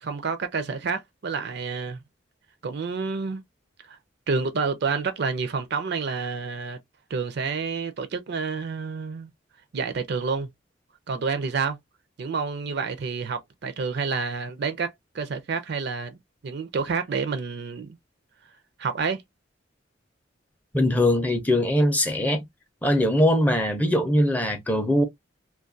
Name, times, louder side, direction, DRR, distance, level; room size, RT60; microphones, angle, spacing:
voice 1, 0.0-2.0 2.6-3.4 3.9-4.0 4.3-6.8 7.1-9.3 9.7-10.5 11.1-11.8 12.2-16.2 16.4-18.0 18.8-19.2, right 5 dB, 60° right, 0.4 m, -29 dB
voice 2, 20.7-22.4 22.8-25.0, left 1 dB, 10° left, 0.4 m, -21 dB
2.3 x 2.2 x 2.5 m
head